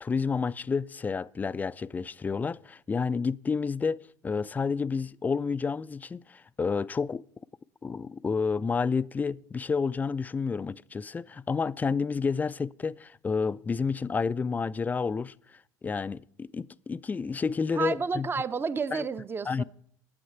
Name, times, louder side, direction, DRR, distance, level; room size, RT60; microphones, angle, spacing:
voice 1, 0.0-7.2 7.8-15.3 15.8-18.3 18.9-19.0 19.5-19.6, left 5 dB, 15° left, 0.3 m, -30 dB
voice 2, 17.7-19.6, right 5 dB, 20° right, 0.6 m, -31 dB
12.0 x 7.8 x 5.8 m
figure-of-eight pair, 65°, 10 cm